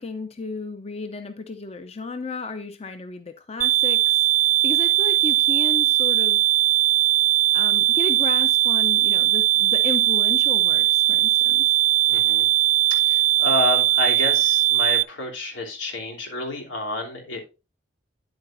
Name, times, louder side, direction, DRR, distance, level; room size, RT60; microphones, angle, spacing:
voice 1, 0.0-6.4 7.5-11.7, left 3 dB, 35° left, 0.6 m, -33 dB
sound 1, 3.6-15.0, right 13 dB, 45° right, 0.3 m, -19 dB
voice 2, 12.1-12.5 12.9-17.4, left 2 dB, 85° left, 3.1 m, -29 dB
9.9 x 8.2 x 2.6 m
head